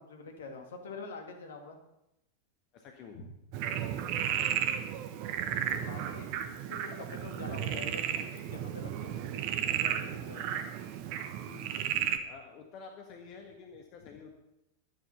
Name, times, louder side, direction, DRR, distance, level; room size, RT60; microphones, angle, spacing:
voice 1, 0.0-1.8 5.7-10.6, left 3 dB, 60° left, 4 dB, 2.1 m, -46 dB
voice 2, 2.7-3.4 5.5-5.7 11.4-14.4, left 4 dB, 40° left, 3 dB, 1.5 m, -49 dB
Frog, 3.5-12.2, right 10 dB, 45° right, 1.0 m, -34 dB
11.5 x 10.0 x 5.6 m, 0.86 s
figure-of-eight pair, 90°, 0 cm